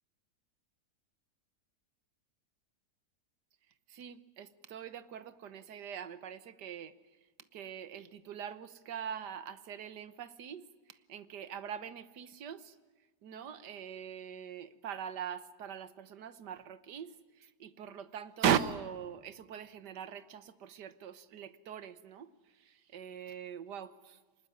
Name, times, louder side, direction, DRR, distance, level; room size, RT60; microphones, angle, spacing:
voice 1, 3.9-6.9 7.5-12.8 13.2-24.2, right 8 dB, 80° right, 14 dB, 1.7 m, -40 dB
24.5 x 20.0 x 9.4 m, 1.3 s
omnidirectional pair, 1.8 m